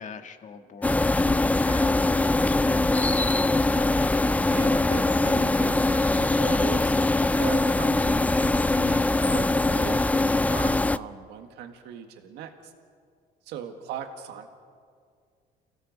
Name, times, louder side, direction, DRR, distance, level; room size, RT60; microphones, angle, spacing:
voice 1, 0.0-4.2, left 6 dB, 45° left, 6 dB, 1.7 m, -44 dB
sound 1, 0.8-11.0, left 2 dB, 10° left, 0.4 m, -22 dB
voice 2, 4.5-7.0 7.4-12.7 13.5-14.5, right 8 dB, 85° right, 6 dB, 1.7 m, -38 dB
29.0 x 17.0 x 5.4 m, 2.1 s
cardioid pair, 110°, 17 cm